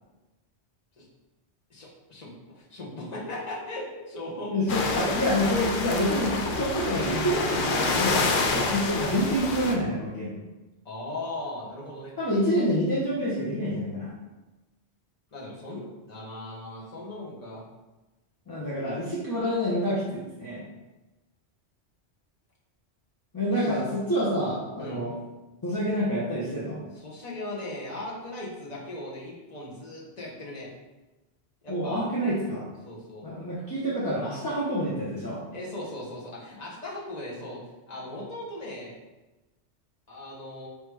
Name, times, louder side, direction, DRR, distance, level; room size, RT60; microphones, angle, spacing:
voice 1, 1.7-4.7 8.5-8.8 10.8-12.1 15.3-17.6 23.5-23.8 24.8-25.0 27.0-30.7 31.6-32.1 32.8-33.3 35.5-37.6 37.9-39.0 40.1-40.7, left 1 dB, 40° left, -5 dB, 1.1 m, -38 dB
voice 2, 4.5-10.4 12.2-14.1 18.5-20.6 23.3-25.1 25.6-26.8 31.7-32.7 33.2-35.4, equal, 20° left, -7 dB, 0.7 m, -27 dB
sound 1, 4.7-9.7, left 3 dB, 60° left, 0.6 m, -28 dB
3.4 x 2.9 x 4.7 m, 1.1 s
omnidirectional pair, 1.2 m